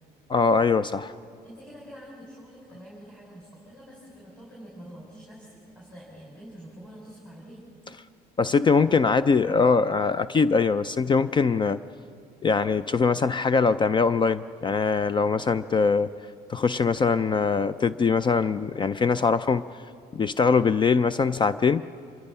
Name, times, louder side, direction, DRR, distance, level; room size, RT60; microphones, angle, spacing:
voice 1, 0.3-1.1 8.4-11.8 12.4-16.1 16.5-19.6 20.1-21.8, left 5 dB, 30° left, 14 dB, 0.4 m, -22 dB
voice 2, 1.4-7.6, equal, 5° left, -5 dB, 5.6 m, -46 dB
26.0 x 22.5 x 5.6 m, 2.4 s
cardioid pair, 110°, 17 cm